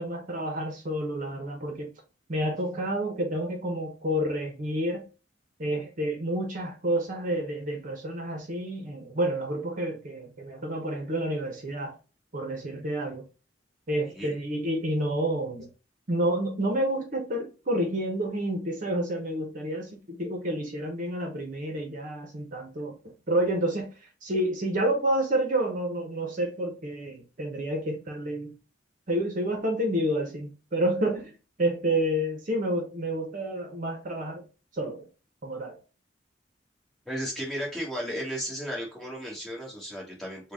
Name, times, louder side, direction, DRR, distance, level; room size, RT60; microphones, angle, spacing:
voice 1, 0.0-1.9 2.3-5.1 5.6-11.9 12.3-13.2 13.9-15.7 16.1-23.0 23.3-23.9 24.2-28.6 29.1-31.3 31.6-34.4 34.7-35.0 35.4-35.8, right 1 dB, 45° right, 0.8 m, -29 dB
voice 2, 37.0-40.5, equal, 5° left, 1.5 m, -34 dB
3.9 x 2.2 x 3.4 m
head